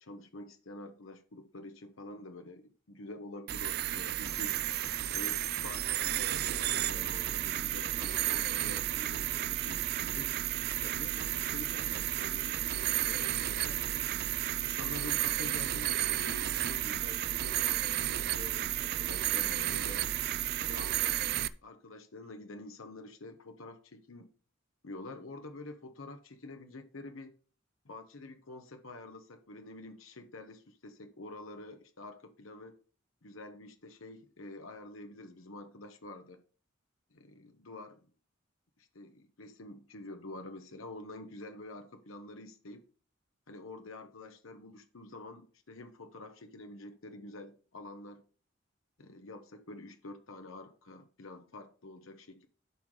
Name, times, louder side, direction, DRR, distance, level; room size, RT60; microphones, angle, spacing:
voice 1, 0.0-4.6 5.1-10.3 10.8-14.1 14.6-20.1 20.6-21.2 21.6-24.3 24.8-27.4 27.8-32.8 33.2-36.4 37.1-38.0 38.8-42.8 43.5-48.2 49.0-52.5, left 2 dB, 85° left, 1.0 m, -47 dB
sound 1, 3.5-21.5, right 13 dB, 55° right, 0.4 m, -32 dB
11.5 x 4.9 x 3.8 m
head